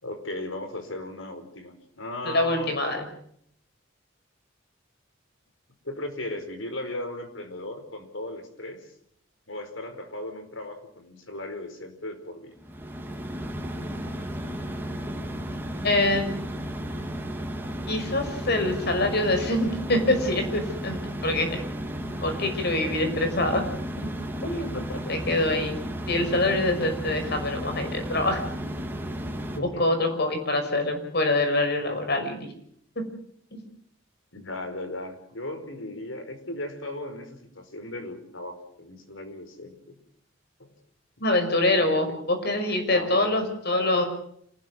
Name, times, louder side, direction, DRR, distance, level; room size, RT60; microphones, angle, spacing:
voice 1, 0.0-2.8 5.8-8.9 9.5-12.6 24.7-25.1 29.5-29.9 34.3-40.0 40.6-40.7 41.7-42.2 42.9-43.4, left 1 dB, 85° left, 8 dB, 4.9 m, -37 dB
voice 2, 2.2-3.0 15.8-16.3 17.9-21.6 22.2-23.6 24.0-24.1 24.4-24.7 25.1-25.8 26.1-28.4 29.5-32.5 33.0-33.1 33.5-33.6 41.2-44.0, left 2 dB, 55° left, 7 dB, 5.8 m, -25 dB
sound 1, 12.6-29.6, equal, 10° right, 3.1 m, -33 dB
27.5 x 19.5 x 6.3 m, 0.68 s
head